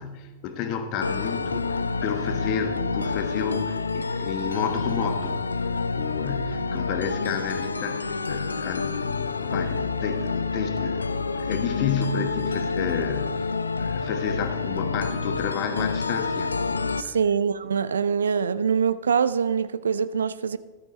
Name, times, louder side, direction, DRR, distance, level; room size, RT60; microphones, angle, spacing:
voice 1, 0.0-5.4 5.7-16.5 17.0-17.1, left 7 dB, 40° left, 1.4 m, -31 dB
sound 1, 1.0-17.0, left 4 dB, 80° left, 0.4 m, -28 dB
voice 2, 17.0-20.6, right 6 dB, 70° right, 0.4 m, -24 dB
14.0 x 12.5 x 3.1 m
figure-of-eight pair, 90°, 0 cm